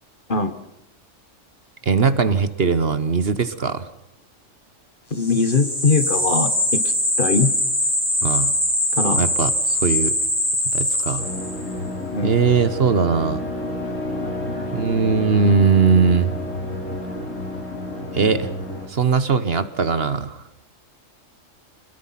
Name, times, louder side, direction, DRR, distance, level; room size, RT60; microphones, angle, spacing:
voice 1, 1.8-3.9 8.2-8.5 9.2-10.2 10.7-11.3 12.2-13.4 14.7-16.4 18.1-18.5 18.9-20.4, right 5 dB, 50° right, 13 dB, 1.3 m, -20 dB
voice 2, 5.1-6.8 7.2-7.5 8.9-9.3 12.1-12.3, left 4 dB, 40° left, 11 dB, 1.6 m, -21 dB
sound 1, 5.2-11.7, left 1 dB, 15° left, 4.1 m, -22 dB
sound 2, 11.2-18.9, left 1 dB, 75° left, 4.0 m, -29 dB
26.0 x 21.5 x 5.9 m, 0.83 s
omnidirectional pair, 1.3 m